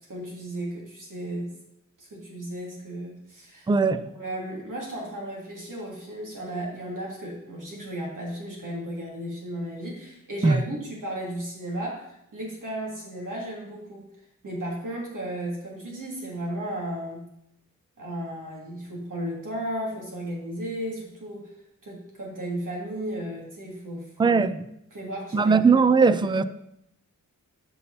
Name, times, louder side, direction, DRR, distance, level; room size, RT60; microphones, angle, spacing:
voice 1, 0.1-1.5 2.0-3.7 4.1-14.1 14.4-17.2 18.0-21.5 21.8-24.6 24.9-26.5, right 1 dB, 75° right, 3.1 m, -35 dB
voice 2, 3.7-4.0 10.4-10.6 24.2-24.6 25.3-26.4, right 4 dB, 15° right, 0.3 m, -19 dB
13.0 x 5.6 x 4.2 m
wide cardioid pair, 140°, 32 cm